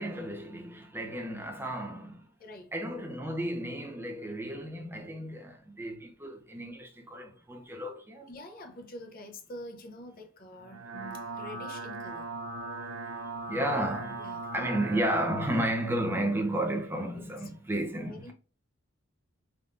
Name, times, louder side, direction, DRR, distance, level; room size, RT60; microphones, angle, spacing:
voice 1, 0.0-2.3 2.7-8.3 13.2-18.3, right 1 dB, 10° right, 0.6 m, -33 dB
voice 2, 2.4-2.7 8.3-12.3 14.2-14.7 17.1-17.2 18.0-18.3, left 1 dB, 45° left, 0.6 m, -46 dB
sound 1, 10.6-15.5, right 3 dB, 75° right, 0.6 m, -39 dB
3.5 x 2.6 x 2.4 m
head